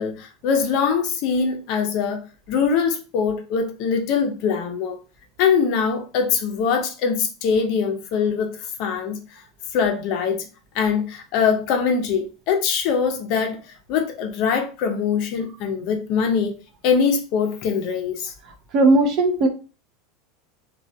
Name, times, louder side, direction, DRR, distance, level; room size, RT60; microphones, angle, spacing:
voice 1, 0.0-2.2 2.5-5.0 5.4-8.5 8.8-9.2 9.7-10.4 10.7-13.6 13.9-16.5 16.8-18.3, left 6 dB, 45° left, 0.5 m, -22 dB
voice 2, 18.7-19.5, right 2 dB, 35° right, 0.4 m, -16 dB
3.2 x 2.2 x 2.7 m
supercardioid pair, 175°, 0 cm